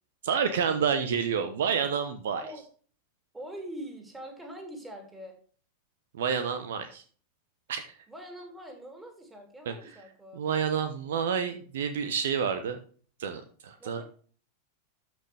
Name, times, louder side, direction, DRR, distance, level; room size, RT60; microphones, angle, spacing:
voice 1, 0.2-2.4 6.1-7.0 7.7-7.8 9.7-9.8 10.3-12.8 13.2-14.0, right 7 dB, 60° right, 9 dB, 1.0 m, -29 dB
voice 2, 3.3-5.4 8.1-10.4 13.8-14.0, right 1 dB, 10° right, 3 dB, 3.5 m, -43 dB
13.0 x 6.2 x 3.4 m, 0.43 s
figure-of-eight pair, 90°, 0 cm